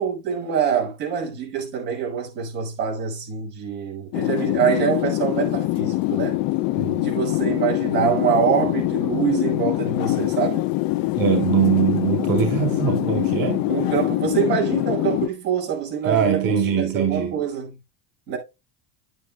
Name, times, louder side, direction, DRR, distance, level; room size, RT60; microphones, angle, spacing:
voice 1, 0.0-6.4 7.0-10.7 13.7-17.7 18.3-18.4, right 8 dB, 80° right, 6.1 m, -25 dB
sound 1, 4.1-15.3, left 18 dB, 45° left, 0.5 m, -24 dB
voice 2, 6.8-7.1 11.1-13.7 16.0-17.4, right 7 dB, 40° right, 2.4 m, -22 dB
10.0 x 9.3 x 2.4 m
hypercardioid pair, 95°, 48 cm